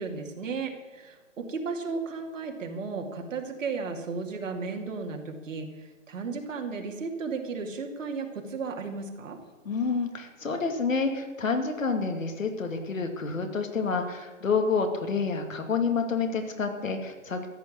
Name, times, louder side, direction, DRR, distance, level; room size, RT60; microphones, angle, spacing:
voice 1, 0.0-9.4, right 4 dB, 70° right, 3 dB, 2.7 m, -34 dB
voice 2, 9.6-17.5, left 4 dB, 80° left, 5 dB, 2.5 m, -28 dB
14.0 x 6.9 x 9.6 m, 1.2 s
figure-of-eight pair, 120°, 39 cm